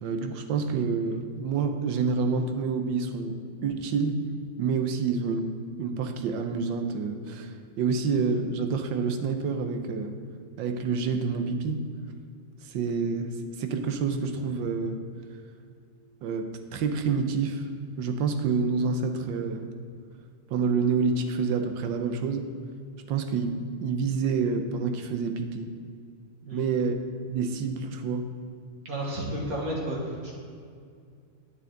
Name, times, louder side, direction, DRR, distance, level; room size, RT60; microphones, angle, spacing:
voice 1, 0.0-3.4 3.6-4.2 4.6-5.5 5.8-10.1 10.6-11.8 12.6-13.3 13.6-15.0 16.2-17.7 18.0-19.7 20.5-22.5 23.1-23.5 23.8-25.7 26.5-27.0 27.3-28.3, right 5 dB, 90° right, 6 dB, 1.5 m, -28 dB
voice 2, 28.9-30.4, right 1 dB, 55° right, -3 dB, 1.8 m, -32 dB
9.3 x 8.5 x 3.8 m, 2.3 s
omnidirectional pair, 2.0 m